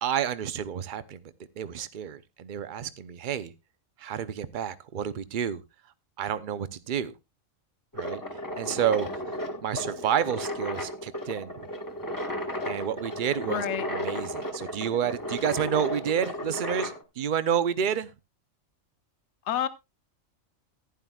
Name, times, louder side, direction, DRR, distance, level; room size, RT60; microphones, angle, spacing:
voice 1, 0.0-3.5 4.0-5.6 6.2-7.1 7.9-8.2 8.6-9.1 9.6-11.7 12.6-18.1, right 8 dB, 45° right, 0.8 m, -30 dB
sound 1, 7.9-17.0, equal, 15° left, 1.5 m, -34 dB
voice 2, 13.5-13.9 19.5-19.7, left 9 dB, 60° left, 1.1 m, -28 dB
15.0 x 10.5 x 2.3 m
omnidirectional pair, 1.4 m